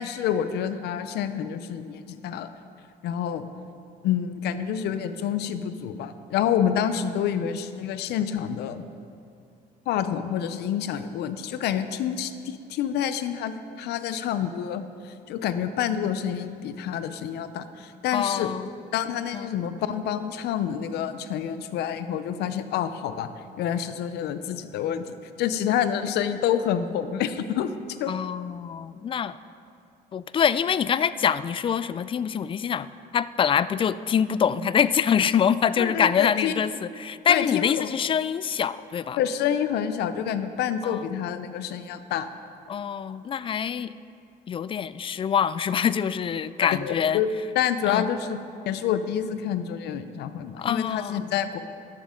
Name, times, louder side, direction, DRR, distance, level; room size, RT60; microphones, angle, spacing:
voice 1, 0.0-2.5 3.0-3.5 4.0-8.8 9.9-14.9 15.3-18.5 18.9-23.3 23.6-27.7 28.0-28.1 35.8-36.5 37.3-37.9 39.2-42.3 46.6-47.3 47.6-48.4 48.7-51.6, left 9 dB, 75° left, 11 dB, 0.7 m, -28 dB
voice 2, 18.1-18.7 19.3-19.5 28.1-29.4 30.1-32.9 33.1-39.2 40.8-41.1 42.7-43.9 44.5-47.2 47.9-48.1 50.6-51.3, left 8 dB, 30° left, 16 dB, 0.3 m, -25 dB
12.5 x 11.5 x 3.8 m, 2.4 s
cardioid pair, 110°, 17 cm